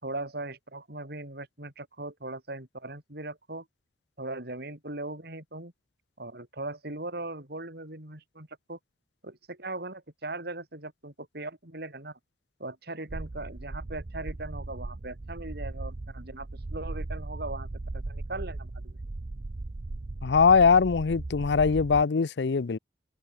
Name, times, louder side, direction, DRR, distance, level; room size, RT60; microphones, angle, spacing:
voice 1, 0.0-3.7 4.2-5.7 6.2-8.8 9.2-12.2 12.6-17.7 17.9-19.0, right 2 dB, 60° right, 5.2 m, -39 dB
sound 1, 13.1-22.0, right 2 dB, 40° right, 0.6 m, -38 dB
voice 2, 20.2-22.8, left 5 dB, 70° left, 0.5 m, -21 dB
head